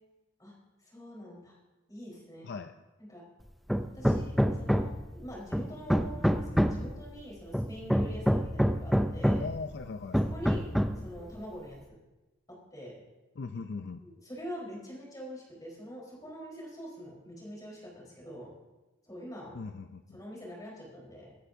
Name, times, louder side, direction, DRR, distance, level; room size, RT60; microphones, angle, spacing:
voice 1, 0.8-1.6 1.9-2.5 3.0-3.2 3.9-9.5 10.2-10.7 11.0-12.0 12.5-12.9 14.0-18.5 19.0-19.5 20.1-21.3, equal, 20° left, -3 dB, 4.1 m, -45 dB
Hammer, 3.7-5.1 5.5-6.9 7.5-9.6 10.1-11.1, equal, ahead, 0.4 m, -27 dB
voice 2, 9.4-10.2 13.4-14.1 19.5-20.2, left 4 dB, 55° left, 9 dB, 0.4 m, -39 dB
24.5 x 10.0 x 2.7 m, 1.1 s
head